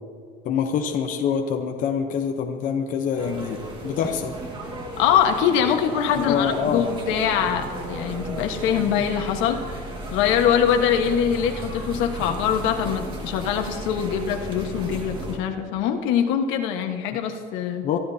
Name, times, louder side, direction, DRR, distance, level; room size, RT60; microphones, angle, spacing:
voice 1, 0.4-4.3 6.1-6.8 17.8-18.0, left 7 dB, 40° left, 4 dB, 0.9 m, -25 dB
sound 1, 3.2-15.4, right 1 dB, 25° right, 2.0 m, -34 dB
voice 2, 5.0-9.6 10.1-18.0, left 8 dB, 75° left, 4 dB, 1.4 m, -23 dB
23.5 x 13.0 x 2.8 m, 2.1 s
cardioid pair, 175°, 20 cm